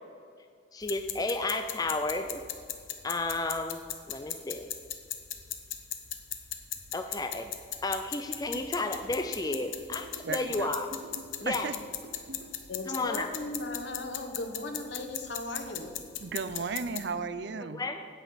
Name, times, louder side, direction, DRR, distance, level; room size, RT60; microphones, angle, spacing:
voice 1, 0.7-2.4 3.0-4.7 6.9-7.5 7.8-10.9 11.4-11.7 12.9-13.3 17.7-18.0, left 2 dB, 20° left, 6 dB, 0.4 m, -32 dB
sound 1, 0.8-17.1, left 10 dB, 85° left, 1.0 m, -39 dB
sound 2, 8.5-12.5, right 1 dB, 75° right, 0.9 m, -47 dB
voice 2, 10.2-10.7 11.5-11.8 16.2-17.8, right 5 dB, 60° right, 14 dB, 0.5 m, -34 dB
voice 3, 12.7-15.9, left 2 dB, 65° left, 5 dB, 1.3 m, -37 dB
9.1 x 8.2 x 6.8 m, 2.2 s
head